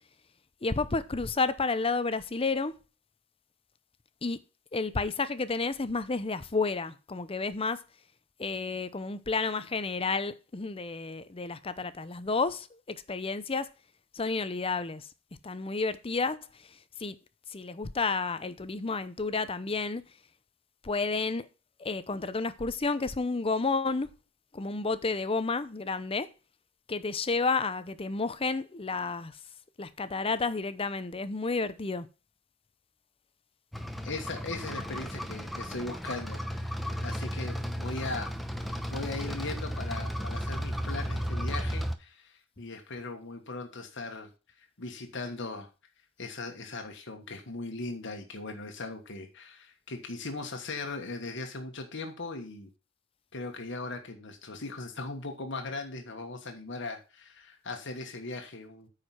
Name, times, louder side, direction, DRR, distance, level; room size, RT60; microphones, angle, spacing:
voice 1, 0.6-2.7 4.2-4.4 4.7-7.8 8.4-13.7 14.1-15.1 15.4-16.4 17.0-17.2 17.5-20.0 20.8-21.5 21.8-24.1 24.5-26.3 26.9-29.3 29.8-32.1, left 4 dB, 30° left, 0.7 m, -31 dB
sound 1, 33.7-41.9, equal, ahead, 0.8 m, -34 dB
voice 2, 34.0-38.3 38.6-44.3 44.6-45.7 46.2-52.7 53.3-58.9, left 3 dB, 60° left, 1.4 m, -39 dB
9.2 x 4.9 x 5.7 m
head